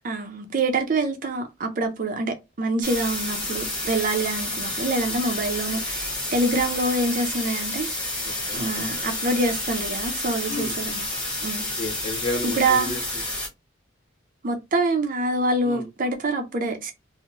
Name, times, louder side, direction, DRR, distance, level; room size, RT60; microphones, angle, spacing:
voice 1, 0.0-8.1 8.5-11.1 11.4-11.7 12.5-13.0 14.4-16.9, right 2 dB, 45° right, 0.5 m, -26 dB
sound 1, 2.8-13.5, left 1 dB, 5° left, 1.0 m, -30 dB
voice 2, 8.2-8.6 10.5-10.7 11.8-13.0 15.6-15.9, left 2 dB, 30° left, 1.2 m, -32 dB
2.9 x 2.0 x 2.5 m
head